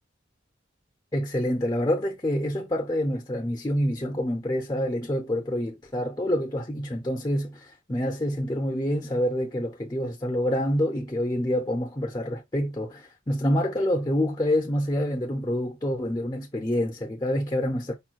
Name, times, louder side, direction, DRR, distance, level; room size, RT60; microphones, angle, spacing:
voice 1, 1.1-17.9, equal, 20° left, 0.7 m, -27 dB
5.1 x 2.2 x 4.5 m
head